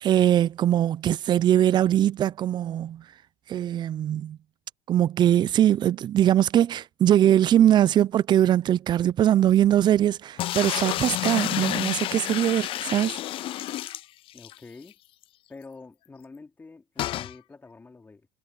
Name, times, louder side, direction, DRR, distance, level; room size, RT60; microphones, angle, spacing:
voice 1, 0.0-3.0 3.5-4.4 4.9-13.2, right 11 dB, 35° right, 0.5 m, -21 dB
sound 1, 10.4-14.6 14.9-15.0 15.2-15.3 17.0-17.3, left 14 dB, 45° left, 0.4 m, -29 dB
voice 2, 14.3-15.0 15.5-18.3, left 3 dB, 15° left, 3.2 m, -47 dB
supercardioid pair, 125°, 13 cm